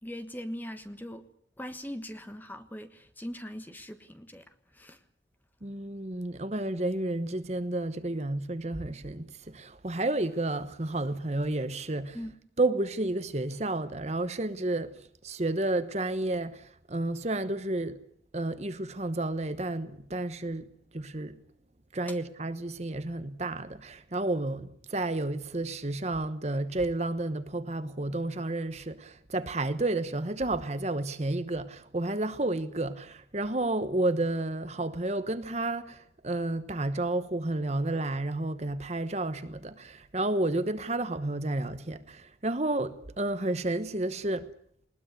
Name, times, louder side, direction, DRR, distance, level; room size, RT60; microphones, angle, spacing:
voice 1, 0.0-1.2 1.6-5.0 12.1-12.4, equal, 10° left, 1.3 m, -41 dB
voice 2, 5.6-12.3 12.6-18.0 18.3-21.4 21.9-44.5, right 2 dB, 35° right, 1.1 m, -31 dB
20.5 x 19.5 x 8.2 m
head